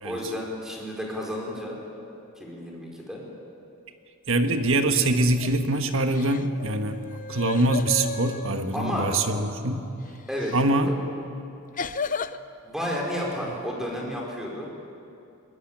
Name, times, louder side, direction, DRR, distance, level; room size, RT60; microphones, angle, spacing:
voice 1, 0.0-1.8 2.4-3.2 8.7-9.6 10.3-10.6 10.8-10.9 12.6-14.7, equal, ahead, -2 dB, 4.5 m, -32 dB
voice 2, 4.3-7.0 7.3-9.9 10.5-10.9, right 2 dB, 60° right, 6 dB, 1.6 m, -24 dB
sound 1, 5.3-5.7 6.1-8.6 10.4-10.6 11.8-12.4, left 4 dB, 35° left, 0.6 m, -33 dB
23.0 x 20.0 x 8.9 m, 2.6 s
head